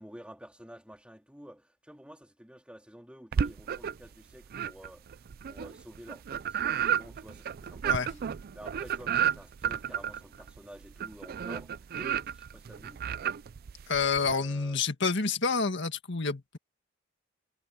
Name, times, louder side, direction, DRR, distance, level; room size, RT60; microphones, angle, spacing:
voice 1, 0.0-8.3 8.5-13.1 13.9-14.8, equal, 5° right, 3.7 m, -50 dB
sound 1, 3.3-4.1 4.5-14.3, right 8 dB, 50° right, 0.4 m, -32 dB
voice 2, 13.9-16.6, left 4 dB, 65° left, 1.8 m, -28 dB
head